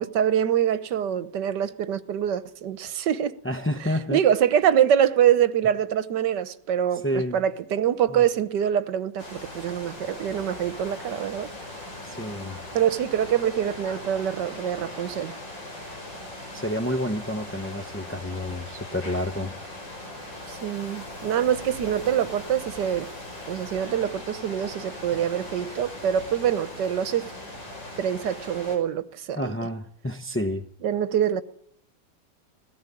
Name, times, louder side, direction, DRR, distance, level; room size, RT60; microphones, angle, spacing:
voice 1, 0.0-3.4 3.8-11.5 12.7-15.3 20.5-23.1 23.5-27.3 28.0-29.5 30.8-31.4, right 9 dB, 70° right, 1.6 m, -25 dB
voice 2, 3.4-4.2 7.0-7.4 8.1-8.3 12.0-12.6 16.5-19.5 29.3-30.7, left 1 dB, 20° left, 0.4 m, -29 dB
sound 1, 9.2-28.8, left 1 dB, 80° left, 6.4 m, -39 dB
17.5 x 16.5 x 9.8 m
omnidirectional pair, 2.0 m